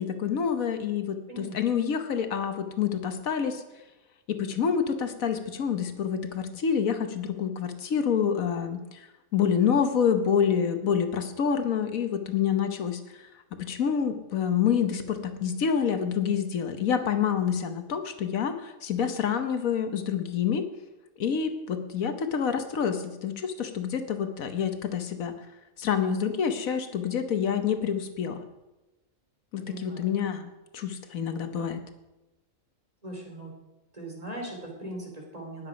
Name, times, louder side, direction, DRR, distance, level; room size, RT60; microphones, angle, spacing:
voice 1, 0.0-3.6 4.3-9.1 9.3-13.3 13.6-20.6 21.2-25.3 25.8-28.4 29.5-31.8, left 7 dB, 85° left, 8 dB, 1.5 m, -27 dB
voice 2, 29.6-30.4 33.0-33.5 33.9-35.7, right 1 dB, 30° right, 0 dB, 3.2 m, -40 dB
19.0 x 7.7 x 5.1 m, 1.0 s
omnidirectional pair, 1.4 m